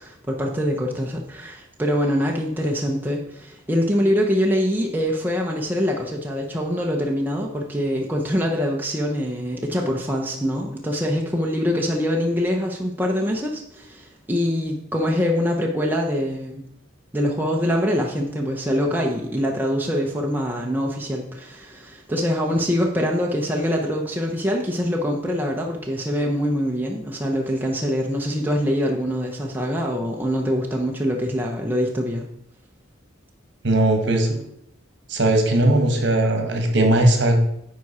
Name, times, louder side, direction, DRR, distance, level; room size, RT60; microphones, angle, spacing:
voice 1, 0.0-16.6 17.1-32.3, equal, 10° right, 0 dB, 0.7 m, -24 dB
voice 2, 33.6-34.4 35.1-37.4, right 1 dB, 60° right, 3 dB, 1.4 m, -18 dB
9.6 x 4.7 x 4.2 m, 0.76 s
head